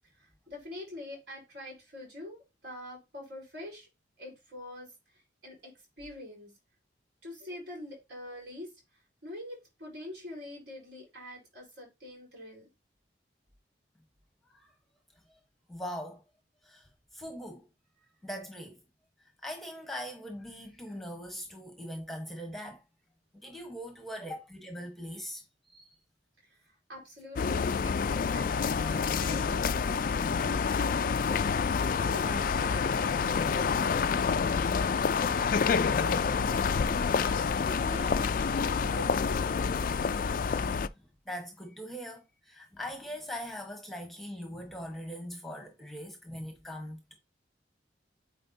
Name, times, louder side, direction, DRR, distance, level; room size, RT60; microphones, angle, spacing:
voice 1, 0.5-3.9 4.2-4.9 5.4-5.6 6.0-6.5 7.2-8.7 9.2-12.7 26.9-31.5 31.9-34.5 35.1-35.5 35.8-39.8, left 1 dB, 65° right, 4.4 m, -45 dB
voice 2, 15.7-16.2 16.6-16.9 17.1-17.7 18.2-18.8 19.4-22.8 23.4-26.0 41.3-47.1, equal, ahead, 1.1 m, -41 dB
sound 1, 27.4-40.9, left 5 dB, 45° left, 0.3 m, -28 dB
8.7 x 4.3 x 2.8 m
head